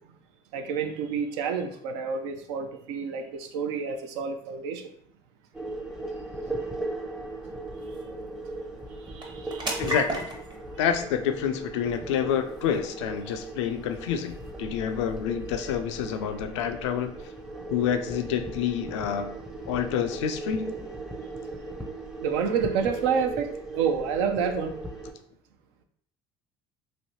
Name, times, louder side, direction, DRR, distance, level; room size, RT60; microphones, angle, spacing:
voice 1, 0.5-4.9 9.1-9.8 22.2-24.8, right 6 dB, 80° right, 6 dB, 0.5 m, -29 dB
sound 1, 5.5-25.1, right 2 dB, 5° right, 0.5 m, -38 dB
sound 2, 6.2-21.1, right 1 dB, 30° right, 0.8 m, -42 dB
voice 2, 9.8-10.3 10.8-17.1 17.7-19.3 19.7-20.8, left 8 dB, 85° left, 7 dB, 0.4 m, -28 dB
3.1 x 2.6 x 2.8 m, 0.67 s
hypercardioid pair, 75°, 15 cm